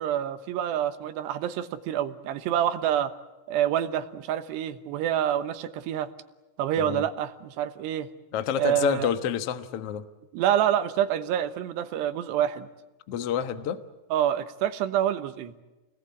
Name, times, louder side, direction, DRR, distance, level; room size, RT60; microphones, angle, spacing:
voice 1, 0.0-3.1 3.5-6.1 6.6-8.1 8.6-9.1 10.3-12.7 14.1-15.5, right 10 dB, 90° right, 10 dB, 3.3 m, -27 dB
voice 2, 8.3-10.0 13.1-13.8, left 9 dB, 90° left, 10 dB, 1.3 m, -28 dB
29.0 x 20.0 x 8.6 m, 1.1 s
omnidirectional pair, 4.8 m